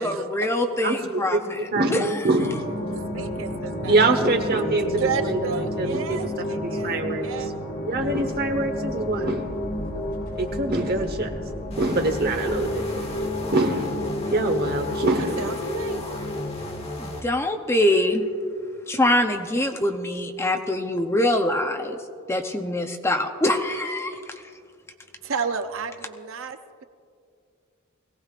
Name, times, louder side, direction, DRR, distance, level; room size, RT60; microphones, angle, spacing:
voice 1, 0.0-1.4 1.9-2.1 17.0-18.2 18.9-22.0 22.3-24.1, left 1 dB, 15° left, 5 dB, 0.7 m, -23 dB
voice 2, 0.8-1.2 1.7-2.7 3.9-6.2 6.6-7.2 7.8-9.6 10.4-11.3 11.8-13.1 13.5-15.5, right 2 dB, 50° right, 5 dB, 1.2 m, -24 dB
sound 1, 2.4-16.9, left 1 dB, 60° left, 1.6 m, -31 dB
voice 3, 2.9-4.0 5.0-7.5 14.2-14.3 15.2-16.3 25.2-26.8, right 5 dB, 70° right, 9 dB, 0.6 m, -32 dB
sound 2, 7.9-14.1, equal, 45° left, 3.6 m, -40 dB
sound 3, 11.7-17.2, left 2 dB, 30° left, 1.3 m, -35 dB
21.5 x 17.0 x 2.5 m, 2.2 s
head